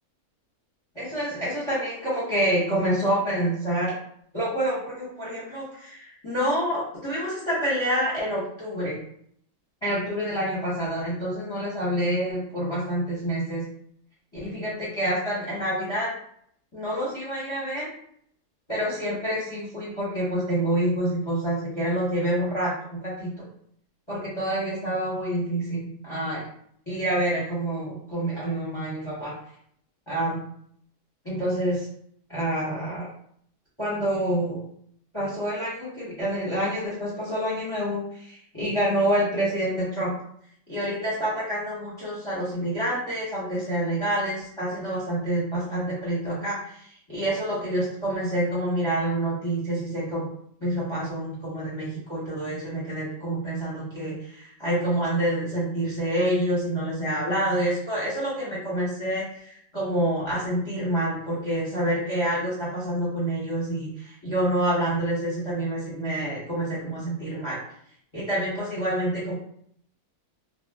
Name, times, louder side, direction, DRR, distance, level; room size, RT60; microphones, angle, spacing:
voice 1, 0.9-3.9 4.3-9.0 9.8-13.6 14.4-16.1 16.7-17.9 18.7-23.3 24.1-26.4 26.9-29.3 30.1-30.4 31.2-31.9 32.3-33.1 33.8-34.6 35.1-40.1 40.7-50.3 50.6-67.6 68.1-69.3, right 1 dB, 25° left, -7 dB, 0.8 m, -27 dB
2.4 x 2.1 x 3.4 m, 0.66 s
omnidirectional pair, 1.6 m